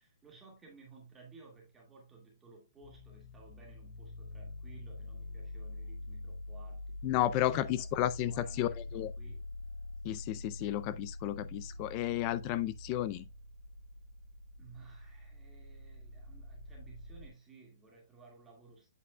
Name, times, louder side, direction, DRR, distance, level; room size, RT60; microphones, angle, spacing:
voice 1, 0.0-7.0 7.4-7.9 8.2-9.5 14.6-18.9, right 4 dB, 10° right, 1.9 m, -56 dB
sound 1, 2.8-17.3, left 2 dB, 60° left, 2.1 m, -45 dB
voice 2, 7.0-9.1 10.0-13.3, left 13 dB, 20° left, 0.4 m, -33 dB
8.1 x 7.6 x 2.2 m
hypercardioid pair, 175°, 2 cm